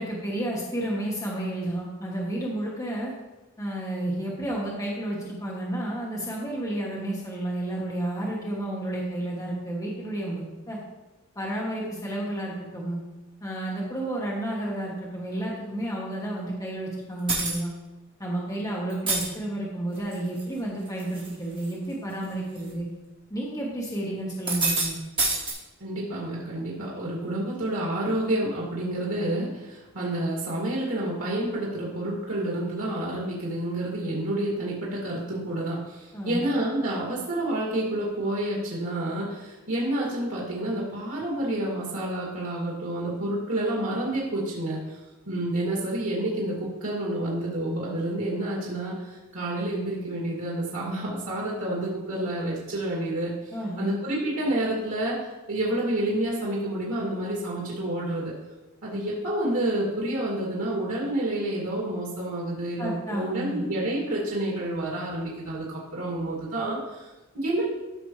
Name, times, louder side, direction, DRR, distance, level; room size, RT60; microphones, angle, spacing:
voice 1, 0.0-3.1 3.6-10.8 11.3-13.0 13.4-17.7 18.2-22.9 23.3-25.0 36.1-36.4 53.5-53.9 62.8-63.6, right 1 dB, 15° left, -4 dB, 1.2 m, -31 dB
sound 1, 17.3-17.6 18.9-19.2 20.0-20.4 20.9-21.3 21.6-21.7 22.6-22.7 24.3-24.9 25.2-25.5, right 3 dB, 25° right, 2.8 m, -26 dB
voice 2, 25.8-45.0 45.3-58.3 58.8-67.6, right 1 dB, 80° right, -4 dB, 2.4 m, -29 dB
14.0 x 5.9 x 3.2 m, 1.1 s
head